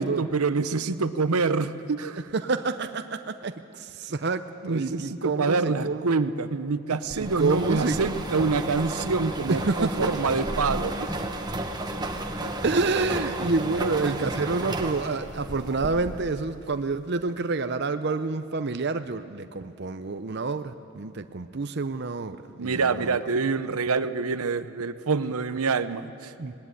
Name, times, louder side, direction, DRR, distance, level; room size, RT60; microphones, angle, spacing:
voice 1, 0.0-2.3 4.6-11.2 12.4-12.5 13.3-13.4 13.7-14.3 22.6-26.3, right 4 dB, 80° right, 13 dB, 0.7 m, -26 dB
voice 2, 2.3-3.5 3.8-6.1 7.2-8.0 9.5-10.1 12.6-23.2 26.4-26.5, right 3 dB, 50° right, 9 dB, 0.6 m, -28 dB
sound 1, 7.1-16.4, right 1 dB, 20° right, 1.2 m, -32 dB
19.0 x 18.0 x 9.7 m, 2.9 s
head